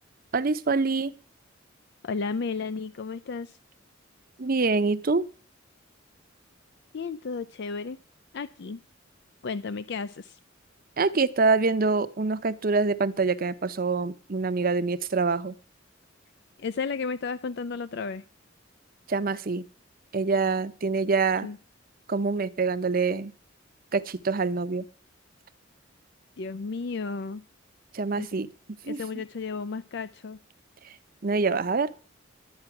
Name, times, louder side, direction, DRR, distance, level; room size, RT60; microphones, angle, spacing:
voice 1, 0.3-1.1 4.4-5.2 11.0-15.5 19.1-19.6 20.1-21.5 22.1-23.3 23.9-24.8 27.9-28.5 28.9-29.0 31.2-31.9, right 4 dB, 45° right, 14 dB, 0.7 m, -25 dB
voice 2, 2.0-3.6 6.9-8.0 8.3-8.8 9.4-10.4 16.6-18.2 21.4-21.6 26.4-27.4 28.2-28.3 28.9-30.4, left 4 dB, 60° left, 14 dB, 0.5 m, -33 dB
11.5 x 8.7 x 5.9 m, 0.40 s
head